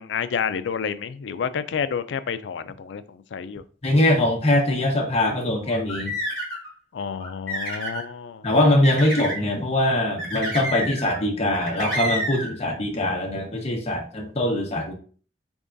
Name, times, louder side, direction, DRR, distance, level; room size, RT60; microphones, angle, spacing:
voice 1, 0.0-3.6 6.9-8.5, left 6 dB, 70° left, 12 dB, 0.4 m, -29 dB
voice 2, 3.8-6.1 8.4-14.9, left 1 dB, 35° left, 0 dB, 1.0 m, -22 dB
sound 1, 5.6-6.7 7.2-8.0 8.8-9.4 10.2-11.2 11.5-12.5, right 1 dB, 5° left, 2.1 m, -29 dB
4.6 x 3.5 x 2.6 m, 0.42 s
head